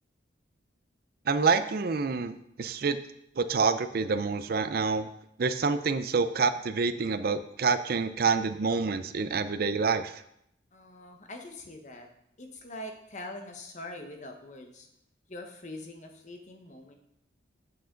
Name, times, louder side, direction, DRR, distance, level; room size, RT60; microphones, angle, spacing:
voice 1, 1.3-3.0 3.4-5.1 5.4-10.1, right 4 dB, 50° right, 11 dB, 0.4 m, -27 dB
voice 2, 10.7-12.1 12.4-14.9 15.3-17.0, left 1 dB, 40° left, 4 dB, 1.1 m, -43 dB
7.8 x 7.7 x 3.8 m, 0.76 s
head